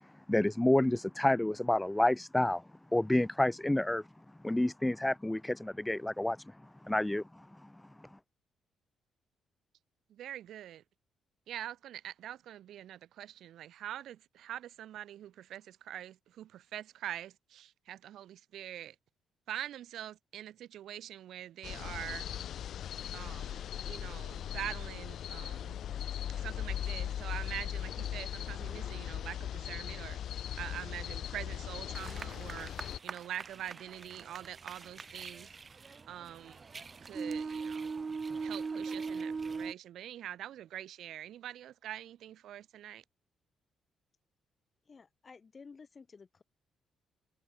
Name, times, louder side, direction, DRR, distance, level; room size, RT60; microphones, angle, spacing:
voice 1, 0.3-2.6 2.9-4.0 4.4-6.4 6.8-7.5, left 1 dB, 10° left, 0.6 m, -29 dB
voice 2, 10.1-10.8 11.5-18.9 19.5-22.3 23.1-25.8 26.3-30.2 30.6-32.7 33.0-35.5 36.1-36.6 37.0-38.0 38.4-43.0, right 11 dB, 75° right, 4.2 m, -44 dB
sound 1, 21.6-33.0, left 10 dB, 65° left, 0.5 m, -39 dB
Mayan Dance Shakers Drumming Conch Horn Blow, 31.9-39.7, right 4 dB, 35° right, 1.0 m, -40 dB
voice 3, 44.9-46.4, left 5 dB, 35° left, 6.8 m, -53 dB
cardioid pair, 90°, 0 cm